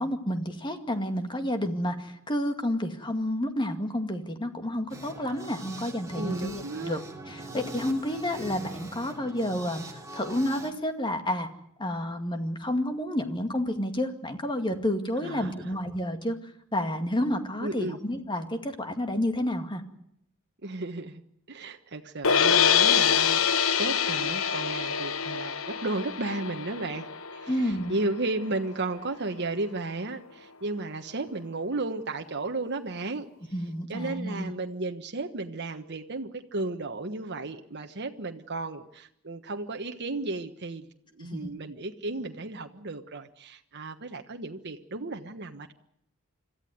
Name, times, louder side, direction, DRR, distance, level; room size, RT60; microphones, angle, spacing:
voice 1, 0.0-7.0 7.3-11.5 11.8-16.4 16.7-19.8 27.5-27.9 33.5-34.5 41.3-41.5, left 1 dB, 20° left, 6 dB, 2.1 m, -30 dB
sound 1, 4.9-10.7, right 2 dB, 15° right, 2.8 m, -42 dB
voice 2, 6.1-7.0 15.2-15.7 17.6-18.0 20.6-21.2 21.5-33.3 33.9-40.9 41.1-45.7, right 2 dB, 55° right, 5 dB, 1.3 m, -34 dB
sound 2, 22.2-28.4, left 7 dB, 70° left, 1.1 m, -25 dB
26.0 x 14.0 x 9.4 m, 0.75 s
head